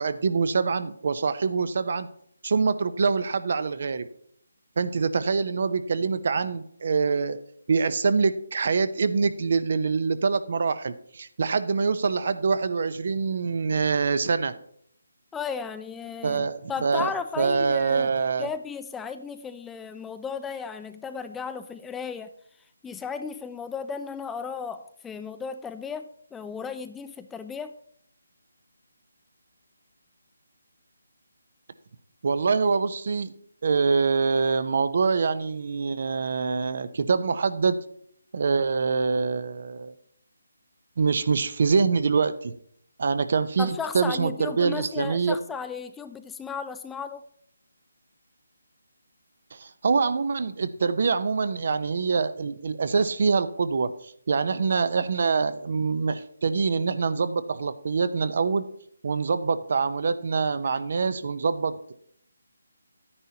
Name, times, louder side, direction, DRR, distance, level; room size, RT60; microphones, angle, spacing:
voice 1, 0.0-2.1 2.4-4.1 4.8-7.4 7.7-14.5 16.2-17.1 17.4-18.5 32.2-33.3 33.6-37.8 38.3-39.9 41.0-42.5 43.0-45.4 49.5-58.7 59.0-61.9, right 5 dB, 55° right, 13 dB, 0.7 m, -25 dB
voice 2, 15.3-18.1 18.4-22.3 22.8-27.8 43.6-47.2, left 6 dB, 5° left, 10 dB, 0.3 m, -35 dB
11.0 x 9.8 x 2.8 m, 0.66 s
figure-of-eight pair, 160°, 0 cm